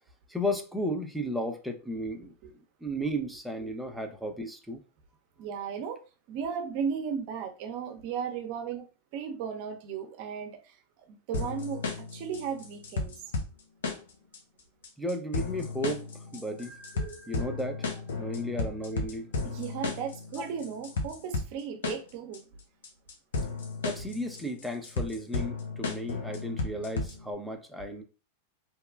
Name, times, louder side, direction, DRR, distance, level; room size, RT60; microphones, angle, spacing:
voice 1, 0.3-2.3 2.8-4.8 15.0-16.7 17.3-17.9 18.2-19.3 20.4-20.5 23.8-28.0, equal, ahead, 0.5 m, -34 dB
voice 2, 5.4-6.0 6.3-8.8 9.1-10.8 11.1-13.1 16.9-17.3 19.5-22.4, right 7 dB, 55° right, 0.6 m, -35 dB
sound 1, 11.3-27.3, left 3 dB, 80° left, 0.7 m, -34 dB
sound 2, 16.6-19.5, right 2 dB, 60° left, 1.2 m, -56 dB
2.8 x 2.2 x 2.3 m
hypercardioid pair, 110°, 0 cm